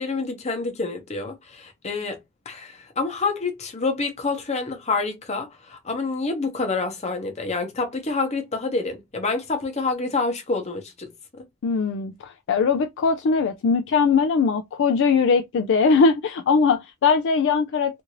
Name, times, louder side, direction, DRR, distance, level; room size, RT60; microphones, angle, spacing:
voice 1, 0.0-11.4, left 3 dB, 30° left, 0.8 m, -28 dB
voice 2, 11.6-18.0, left 5 dB, 55° left, 0.3 m, -20 dB
2.6 x 2.5 x 2.9 m
head